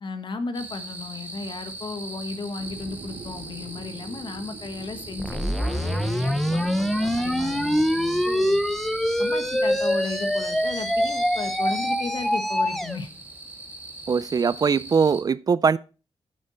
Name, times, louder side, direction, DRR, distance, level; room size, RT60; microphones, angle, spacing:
voice 1, 0.0-8.6 9.2-13.1, left 3 dB, 50° left, 1.3 m, -35 dB
sound 1, 0.5-15.2, right 2 dB, 15° right, 2.0 m, -40 dB
sound 2, 2.6-12.1, right 4 dB, 80° right, 2.2 m, -43 dB
sound 3, 5.2-13.0, equal, ahead, 0.7 m, -24 dB
voice 2, 14.1-15.8, right 5 dB, 40° right, 0.3 m, -21 dB
8.7 x 7.9 x 4.2 m
wide cardioid pair, 110°, 10 cm